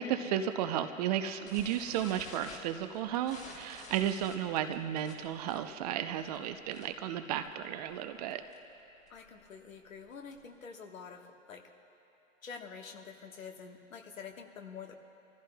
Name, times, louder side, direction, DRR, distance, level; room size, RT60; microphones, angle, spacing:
voice 1, 0.0-8.4, right 10 dB, 30° right, 9 dB, 0.5 m, -33 dB
sound 1, 1.5-7.1 7.4-7.6 7.9-8.0 8.3-8.6 9.1-10.6, left 3 dB, 15° left, 1.3 m, -50 dB
voice 2, 9.1-11.6 12.4-15.0, left 6 dB, 75° left, 4 dB, 1.4 m, -47 dB
29.5 x 15.0 x 2.2 m, 2.9 s
figure-of-eight pair, 110°, 41 cm